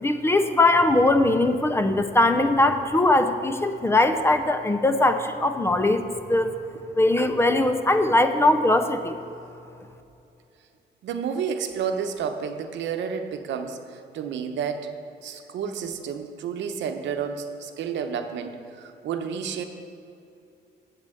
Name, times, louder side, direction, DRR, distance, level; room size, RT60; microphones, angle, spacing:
voice 1, 0.0-6.0 6.3-6.6 7.0-9.2, left 2 dB, 15° left, 8 dB, 0.5 m, -20 dB
voice 2, 11.0-14.9 15.2-19.6, right 7 dB, 85° right, 7 dB, 0.9 m, -31 dB
7.8 x 7.5 x 7.6 m, 2.7 s
cardioid pair, 145°, 18 cm